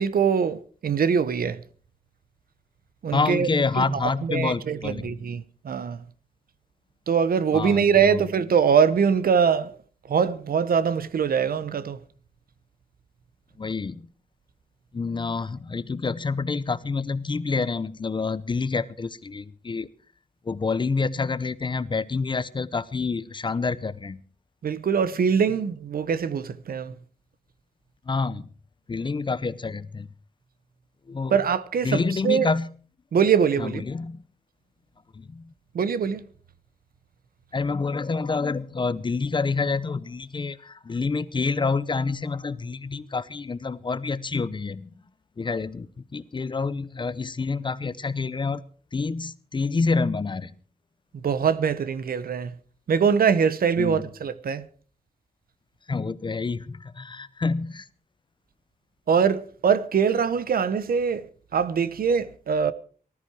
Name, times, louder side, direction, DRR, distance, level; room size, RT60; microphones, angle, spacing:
voice 1, 0.0-1.6 3.0-3.5 3.8-6.0 7.1-9.8 10.1-12.0 24.6-26.9 31.3-32.5 33.1-33.8 35.7-36.2 51.2-52.5 52.9-54.7 59.1-62.7, right 6 dB, 75° right, 0.9 m, -23 dB
voice 2, 3.1-5.2 7.5-8.2 13.6-14.0 14.9-19.9 20.5-24.2 28.1-28.4 28.9-30.1 31.1-31.3 31.8-32.7 33.6-34.2 35.1-35.4 37.5-44.9 45.4-48.6 48.9-50.6 53.8-54.0 55.9-57.9, left 4 dB, 30° left, 0.7 m, -28 dB
19.0 x 13.5 x 4.7 m
wide cardioid pair, 160°, 15 cm